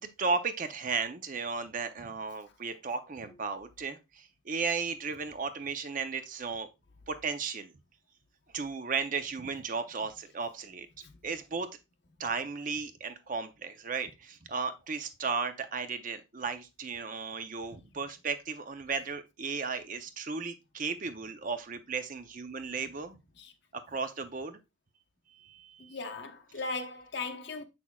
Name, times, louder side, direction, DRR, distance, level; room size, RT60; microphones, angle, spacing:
voice 1, 0.0-6.7 7.1-7.7 8.5-10.9 11.2-11.7 12.2-23.2 23.7-24.6 25.3-26.0, right 5 dB, 40° right, 0.6 m, -35 dB
voice 2, 25.8-27.6, left 3 dB, 55° left, 0.9 m, -38 dB
7.3 x 6.0 x 2.3 m
head